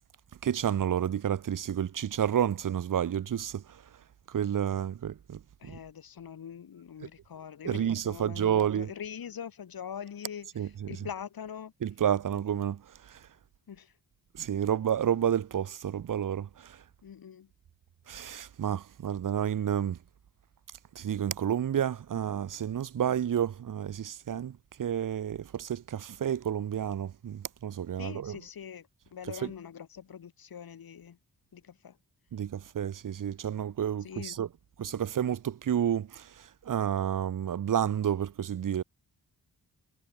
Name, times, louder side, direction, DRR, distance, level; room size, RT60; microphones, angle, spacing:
voice 1, 0.4-3.6 4.3-5.8 7.6-8.9 10.6-11.1 11.8-12.8 14.4-16.8 18.1-20.0 21.0-24.5 24.8-28.4 29.3-29.5 32.3-34.5 34.8-36.3 36.7-38.8, right 9 dB, 60° right, 0.9 m, -30 dB
voice 2, 5.6-10.5 10.9-11.7 13.7-13.9 17.0-17.5 28.0-28.9 29.1-31.2 31.5-31.9 34.0-34.4, left 8 dB, 70° left, 2.5 m, -43 dB
wide cardioid pair, 100°, 37 cm